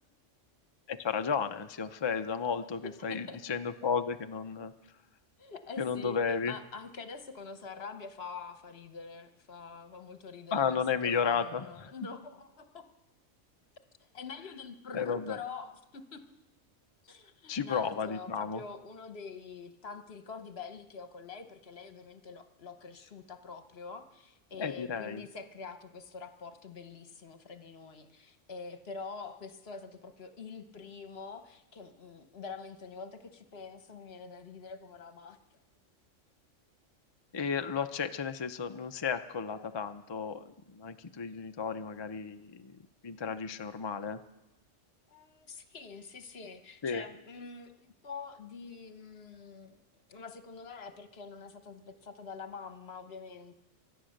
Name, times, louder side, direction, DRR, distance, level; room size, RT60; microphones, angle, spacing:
voice 1, 0.9-4.7 5.8-6.5 10.5-11.7 14.9-15.4 17.5-18.6 24.6-25.2 37.3-40.4 40.7-42.7 43.0-44.2 46.8-47.0, left 6 dB, 40° left, 8 dB, 0.4 m, -33 dB
voice 2, 2.8-3.4 5.4-6.2 6.4-12.9 14.1-16.2 17.0-35.4 45.1-49.8 50.1-53.5, left 5 dB, 55° left, 8 dB, 1.2 m, -45 dB
25.0 x 8.9 x 6.5 m, 0.95 s
omnidirectional pair, 1.3 m